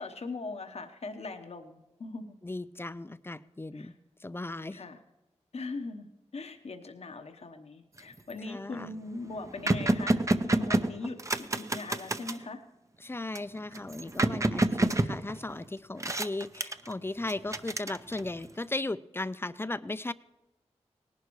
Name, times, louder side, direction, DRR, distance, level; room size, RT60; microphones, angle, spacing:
voice 1, 0.0-2.3 3.7-3.9 4.7-5.0 5.5-6.1 6.3-10.2 10.4-12.6, left 3 dB, 65° left, 6 dB, 1.0 m, -40 dB
voice 2, 2.4-3.9 4.2-4.8 8.5-8.9 13.0-20.1, left 2 dB, 20° left, 15 dB, 0.5 m, -36 dB
sound 1, 8.0-8.3 8.8-8.9 9.1-12.4 13.3-15.6 16.0-16.9 17.3-18.4, right 2 dB, 25° right, 0.7 m, -29 dB
18.5 x 11.5 x 3.1 m, 0.99 s
cardioid pair, 55°, 12 cm